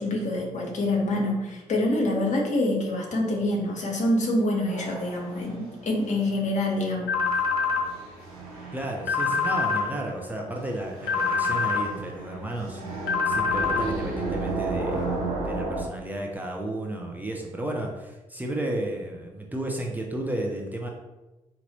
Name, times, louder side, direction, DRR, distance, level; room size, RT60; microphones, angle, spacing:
voice 1, 0.0-7.1, left 1 dB, 40° left, 0 dB, 1.0 m, -26 dB
sound 1, 4.7-15.8, right 2 dB, 80° right, 1.0 m, -35 dB
sound 2, 7.1-7.8 9.1-9.8 11.1-11.8 13.1-13.8, left 5 dB, 60° left, 0.7 m, -24 dB
voice 2, 8.7-12.8 13.3-20.9, right 1 dB, 10° right, -1 dB, 0.6 m, -33 dB
4.0 x 2.9 x 2.9 m, 1.1 s
figure-of-eight pair, 40°, 18 cm